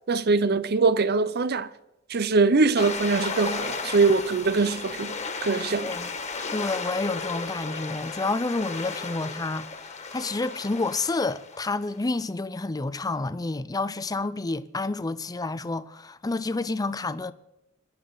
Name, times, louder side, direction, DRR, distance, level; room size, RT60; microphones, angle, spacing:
voice 1, 0.1-1.7 2.1-5.1 5.4-5.9, right 4 dB, 50° right, 0.7 m, -22 dB
sound 1, 2.8-11.9, left 4 dB, 35° left, 1.7 m, -34 dB
voice 2, 5.8-6.1 6.5-17.3, left 3 dB, 20° left, 0.5 m, -29 dB
25.0 x 11.0 x 4.0 m
head